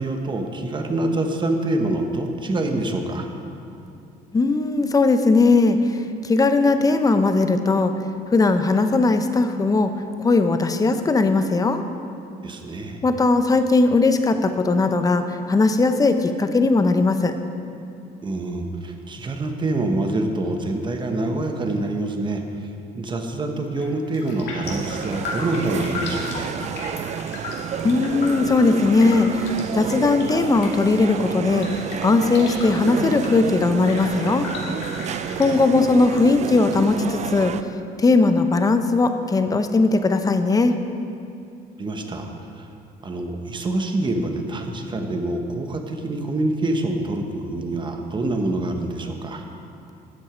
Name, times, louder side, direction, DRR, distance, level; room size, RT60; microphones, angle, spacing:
voice 1, 0.0-3.3 12.4-13.0 18.2-26.5 41.8-42.7 43.0-49.5, right 2 dB, 30° right, 4 dB, 1.2 m, -26 dB
voice 2, 4.3-7.9 8.3-9.9 10.2-11.8 13.0-17.3 27.8-31.7 32.0-34.5 35.4-37.5 38.0-40.7, left 3 dB, 20° left, 8 dB, 0.7 m, -19 dB
Raindrop, 23.7-23.9 24.1-36.2 36.5-37.5 37.9-38.0, left 3 dB, 75° left, 2.5 m, -36 dB
sound 1, 24.6-37.6, right 8 dB, 45° right, 0.4 m, -30 dB
13.0 x 7.5 x 5.1 m, 2.6 s
cardioid pair, 110°, 17 cm